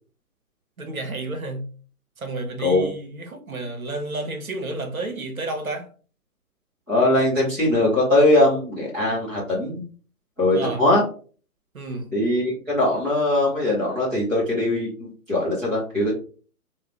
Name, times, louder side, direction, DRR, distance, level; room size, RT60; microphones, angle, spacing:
voice 1, 0.8-1.7 2.2-5.9 10.5-10.8 11.7-12.1, right 2 dB, 70° right, 1.1 m, -31 dB
voice 2, 2.6-2.9 6.9-9.8 10.4-11.0 12.1-16.1, left 1 dB, 5° right, 0.5 m, -21 dB
4.1 x 2.3 x 3.6 m
figure-of-eight pair, 125°, 44 cm